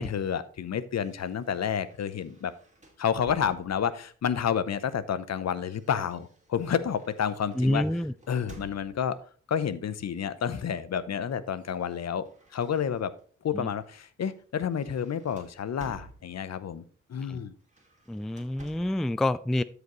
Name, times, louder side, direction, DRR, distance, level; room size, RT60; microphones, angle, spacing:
voice 1, 0.0-2.5 3.0-7.8 8.3-9.2 9.5-12.3 12.5-13.1 13.4-16.8 17.1-17.5, left 8 dB, 60° left, 14 dB, 0.8 m, -30 dB
sound 1, 1.0-4.1 5.1-9.3 10.3-10.7 11.0-13.3 13.7-13.9 14.3-16.7 17.6-19.1, right 2 dB, 25° right, 2.5 m, -54 dB
voice 2, 7.6-8.1 13.5-13.7 17.3-17.4 18.1-19.6, left 1 dB, ahead, 16 dB, 0.3 m, -27 dB
13.0 x 5.0 x 3.1 m, 0.42 s
cardioid pair, 55°, 29 cm